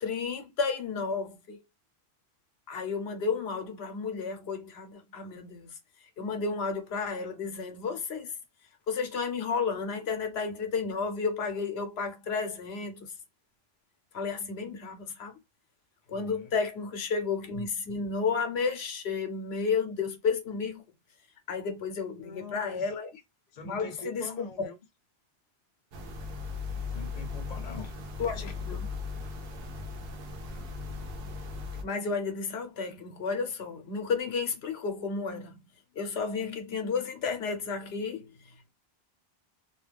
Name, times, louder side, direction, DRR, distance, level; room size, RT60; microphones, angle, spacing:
voice 1, 0.0-1.6 2.7-5.7 6.2-8.3 8.9-13.1 14.1-15.3 16.1-20.8 21.5-23.1 23.6-24.7 28.2-28.9 31.8-35.6 36.0-38.7, left 5 dB, 80° left, 1.0 m, -32 dB
voice 2, 16.1-16.5 22.1-22.9 23.5-24.8 26.9-27.9, left 3 dB, 45° left, 0.7 m, -43 dB
sound 1, 25.9-31.8, left 4 dB, 65° right, 0.8 m, -37 dB
2.4 x 2.2 x 3.2 m
omnidirectional pair, 1.1 m